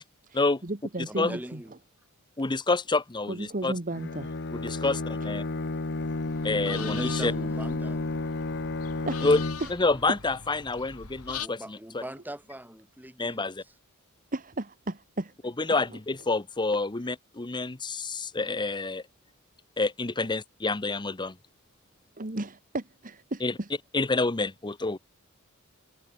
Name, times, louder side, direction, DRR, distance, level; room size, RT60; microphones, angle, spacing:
voice 1, 0.2-1.6 3.3-4.4 4.8-4.9 9.0-9.2 9.6-9.7 14.3-15.3 15.7-16.0 21.2-21.3 22.2-23.7, right 2 dB, 40° right, 1.6 m, -35 dB
voice 2, 1.1-1.7 6.2-8.1 11.4-13.7, right 1 dB, 10° right, 5.7 m, -41 dB
voice 3, 2.4-3.7 4.5-5.4 6.4-7.3 9.2-9.4 9.7-12.0 13.2-13.6 15.6-19.0 19.8-21.3 23.4-23.5 23.9-25.0, left 3 dB, 20° left, 0.8 m, -28 dB
Bowed string instrument, 3.9-9.9, left 2 dB, 55° left, 1.1 m, -32 dB
sound 1, 6.0-11.5, left 7 dB, 85° left, 2.8 m, -42 dB
head